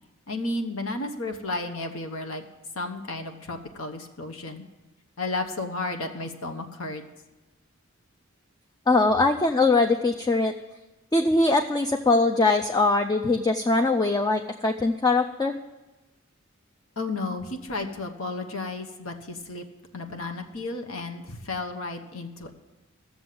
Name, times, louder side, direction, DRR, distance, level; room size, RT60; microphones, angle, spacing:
voice 1, 0.3-2.4 2.7-4.6 5.2-7.0 17.0-19.6 19.9-22.5, left 2 dB, 75° left, 5 dB, 1.1 m, -33 dB
voice 2, 8.9-10.5 11.1-15.5, left 3 dB, 20° left, 5 dB, 0.4 m, -22 dB
14.0 x 7.1 x 7.7 m, 1.1 s
head